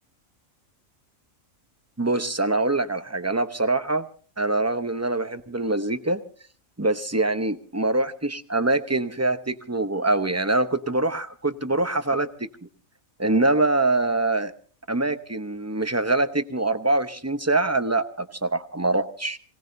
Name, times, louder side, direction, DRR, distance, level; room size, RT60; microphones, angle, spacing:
voice 1, 2.0-4.1 4.4-6.2 6.8-12.5 13.2-14.5 14.9-19.4, right 2 dB, 15° right, 9 dB, 0.7 m, -24 dB
27.0 x 18.0 x 2.7 m, 0.40 s
omnidirectional pair, 1.4 m